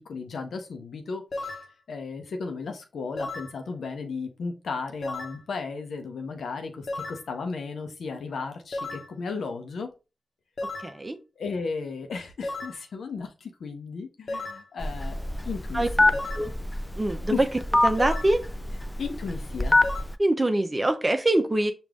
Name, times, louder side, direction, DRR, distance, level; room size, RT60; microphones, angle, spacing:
voice 1, 0.0-1.6 1.9-9.9 11.4-15.2 15.4-16.2 17.3-17.4 19.0-19.8, left 4 dB, 85° left, 5 dB, 0.8 m, -35 dB
sound 1, 1.3-1.7 3.2-3.5 5.0-5.4 6.9-7.2 8.7-9.1 10.6-11.0 12.4-12.8 14.3-14.7 16.1-16.5 18.0-18.4 19.8-20.0, left 2 dB, 65° left, 1.0 m, -34 dB
voice 2, 10.8-11.2 15.7-15.9 16.3-16.5 17.0-17.5 17.8-18.4 20.2-21.7, right 1 dB, 30° right, 7 dB, 0.8 m, -24 dB
Telephone, 14.8-20.1, left 2 dB, 20° left, 0.4 m, -25 dB
5.0 x 2.6 x 3.5 m, 0.30 s
cardioid pair, 45°, 0 cm